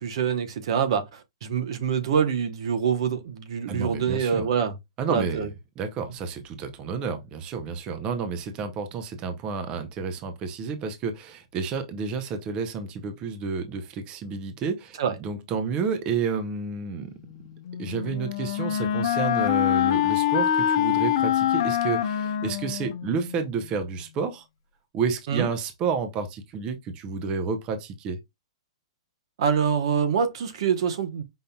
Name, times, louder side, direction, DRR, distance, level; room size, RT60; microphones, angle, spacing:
voice 1, 0.0-4.7 5.1-5.5 15.0-15.1 25.3-25.5 29.4-31.2, right 7 dB, 60° right, 0.9 m, -25 dB
voice 2, 3.7-4.5 5.0-5.5 5.8-17.1 17.8-24.4 24.9-28.2, right 5 dB, 30° right, 0.6 m, -30 dB
Wind instrument woodwind instrument, 17.6-23.5, left 11 dB, 55° left, 0.6 m, -25 dB
5.4 x 2.7 x 2.3 m
hypercardioid pair, 135°, 3 cm